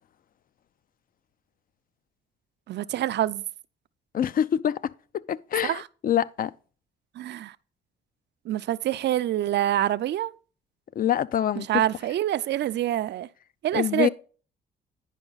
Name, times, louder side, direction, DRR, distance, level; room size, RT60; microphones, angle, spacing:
voice 1, 2.7-3.4 5.6-5.8 7.2-7.5 8.5-10.3 11.6-13.3 13.6-14.1, right 12 dB, 60° right, 0.4 m, -26 dB
voice 2, 4.1-6.5 11.0-11.8 13.7-14.1, left 10 dB, 45° left, 0.4 m, -26 dB
9.9 x 5.3 x 3.9 m
cardioid pair, 90°, 20 cm